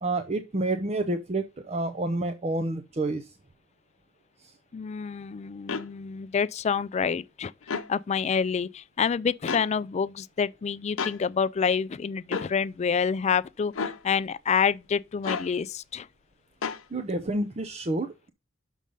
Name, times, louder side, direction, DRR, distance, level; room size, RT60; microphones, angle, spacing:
voice 1, 0.0-3.3 4.4-4.5 16.9-18.3, right 2 dB, 30° right, 0.5 m, -29 dB
voice 2, 4.7-7.5 7.9-16.1, left 6 dB, 35° left, 0.3 m, -27 dB
sound 1, 5.7-5.9 7.6-7.9 9.5-9.7 11.0-11.2 12.3-12.5 13.7-14.0 15.2-15.5 16.6-16.8, left 5 dB, 75° left, 0.7 m, -31 dB
6.3 x 5.3 x 5.4 m
head